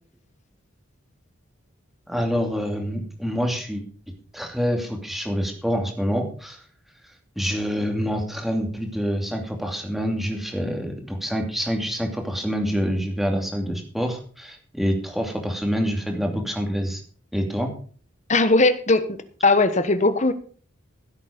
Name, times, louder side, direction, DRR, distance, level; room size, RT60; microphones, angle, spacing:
voice 1, 2.1-3.8 4.3-6.6 7.4-17.0 17.3-17.7, equal, ahead, 2 dB, 2.7 m, -26 dB
voice 2, 18.3-19.2 19.4-20.3, left 2 dB, 35° left, 12 dB, 1.2 m, -18 dB
15.5 x 8.4 x 5.2 m, 0.43 s
head